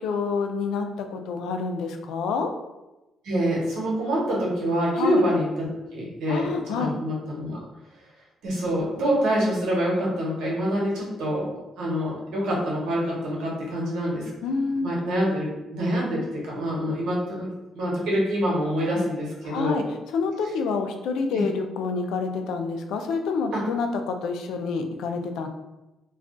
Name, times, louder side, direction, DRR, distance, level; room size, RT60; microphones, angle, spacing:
voice 1, 0.0-2.5 4.9-5.2 6.3-7.0 14.4-14.9 19.4-19.8 20.1-25.5, left 4 dB, 85° left, 5 dB, 0.3 m, -28 dB
voice 2, 3.2-7.6 8.4-11.4 11.8-14.3 14.8-17.5 17.7-19.8 21.3-21.4 23.5-23.6, equal, 85° right, -4 dB, 1.1 m, -26 dB
2.3 x 2.3 x 3.6 m, 1.0 s
cardioid pair, 90°, 0 cm